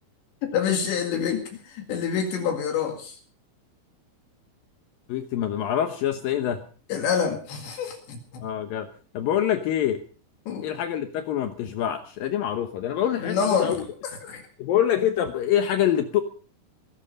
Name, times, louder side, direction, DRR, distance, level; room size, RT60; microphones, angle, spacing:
voice 1, 0.5-3.2 6.9-8.4 10.5-10.7 13.2-13.8 14.2-14.5, left 7 dB, 65° left, 4 dB, 4.0 m, -27 dB
voice 2, 5.1-6.6 8.4-8.9 9.1-10.0 10.6-13.8 14.6-16.2, left 10 dB, 90° left, 8 dB, 2.0 m, -25 dB
21.5 x 12.5 x 5.4 m, 0.41 s
omnidirectional pair, 5.7 m